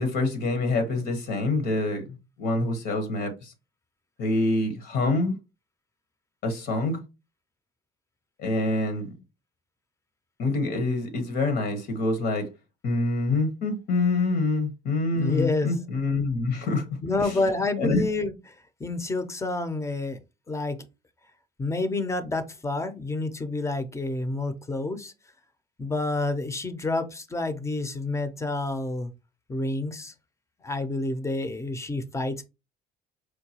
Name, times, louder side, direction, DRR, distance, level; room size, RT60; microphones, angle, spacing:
voice 1, 0.0-3.5 4.2-5.4 6.4-7.0 8.4-9.1 10.4-12.5 12.8-16.9 17.2-18.0, left 2 dB, 70° left, 1.0 m, -26 dB
voice 2, 15.1-15.7 17.0-18.4 18.8-20.2 20.5-20.8 21.6-25.1 25.8-29.1 29.5-30.1 30.6-32.4, left 2 dB, 15° left, 0.6 m, -28 dB
4.5 x 2.2 x 2.8 m
cardioid pair, 110°, 17 cm